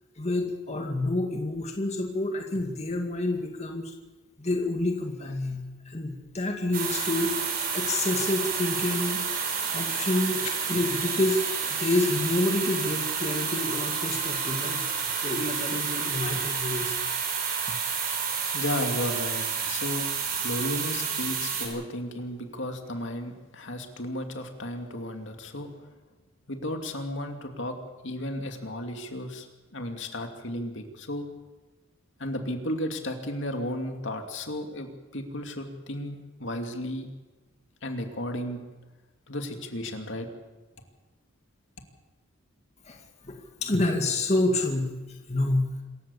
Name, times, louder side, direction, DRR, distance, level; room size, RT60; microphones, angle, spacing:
voice 1, 0.2-3.9 4.4-9.2 9.7-10.4 10.7-11.4 11.7-14.8 15.2-17.0 42.9-44.9 45.3-45.7, left 2 dB, 30° left, 2 dB, 2.2 m, -28 dB
sound 1, 6.7-21.7, right 6 dB, 45° right, 5.2 m, -30 dB
voice 2, 18.5-25.7 26.5-27.8 28.0-29.5 29.7-31.3 32.2-37.1 37.8-38.6 39.3-40.3, left 1 dB, 65° left, 4 dB, 2.6 m, -34 dB
26.5 x 15.5 x 7.2 m, 1.2 s
head